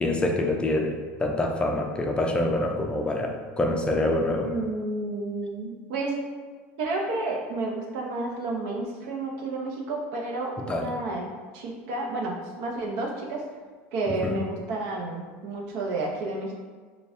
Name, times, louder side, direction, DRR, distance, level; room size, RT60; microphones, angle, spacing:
voice 1, 0.0-4.5 10.7-10.9 14.2-14.4, left 1 dB, 15° left, 2 dB, 0.4 m, -26 dB
voice 2, 4.4-6.1 6.8-11.3 11.5-13.4 13.9-16.5, right 2 dB, 70° right, 0 dB, 0.8 m, -31 dB
4.0 x 2.4 x 3.5 m, 1.5 s
supercardioid pair, 125°, 7 cm